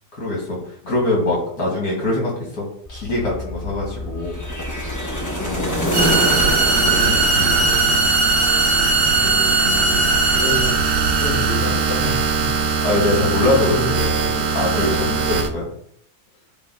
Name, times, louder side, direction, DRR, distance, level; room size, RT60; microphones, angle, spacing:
voice 1, 0.2-0.6 0.9-4.4 6.8-7.5 12.6-13.8 14.5-15.7, left 2 dB, 65° left, -4 dB, 3.0 m, -23 dB
sound 1, 2.9-14.2 14.5-14.6, left 2 dB, 35° left, 2.0 m, -37 dB
sound 2, 4.3-8.5, equal, 20° left, 0.5 m, -25 dB
voice 2, 5.4-5.9 6.8-7.3 9.1-10.8 11.2-12.6 13.4-15.1, left 2 dB, 90° left, -3 dB, 1.7 m, -29 dB
sound 3, 5.9-15.5, right 4 dB, 70° right, 1.4 m, -19 dB
12.0 x 4.1 x 2.3 m, 0.67 s
omnidirectional pair, 1.7 m